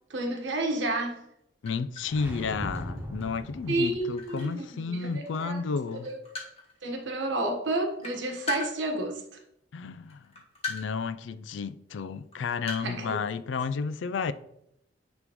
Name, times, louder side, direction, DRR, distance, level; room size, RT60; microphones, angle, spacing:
voice 1, 0.1-1.2 3.7-5.6 6.0-6.2 6.8-9.2 12.8-13.2, right 2 dB, 75° right, 1.3 m, -30 dB
sound 1, 1.3-1.4 1.7-5.6 5.9-6.8 7.4-7.5 7.8-9.5 10.1-11.1 11.4-11.5 12.1-13.3, left 4 dB, 35° left, 1.8 m, -39 dB
voice 2, 1.6-6.1 9.7-10.3 10.7-14.3, left 5 dB, 80° left, 0.4 m, -32 dB
sound 2, 2.0-4.2, equal, 10° right, 0.8 m, -38 dB
9.8 x 3.6 x 3.0 m
head